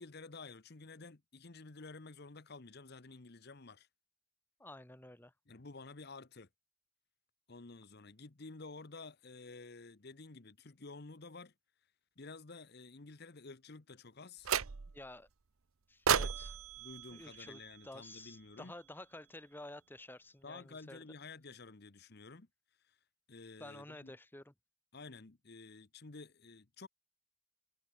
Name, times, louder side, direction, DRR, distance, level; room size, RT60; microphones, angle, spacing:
voice 1, 0.0-3.9 5.5-6.5 7.5-11.5 12.2-14.5 16.8-18.7 20.4-22.5 22.9-23.0 23.3-24.1 24.9-26.9, left 3 dB, 50° left, 1.0 m, -51 dB
voice 2, 4.6-5.3 14.9-15.3 15.9-16.6 17.1-21.0 23.6-24.5, left 1 dB, 10° left, 0.9 m, -51 dB
sound 1, 14.4-15.1 16.1-18.3, right 7 dB, 80° right, 0.8 m, -35 dB
head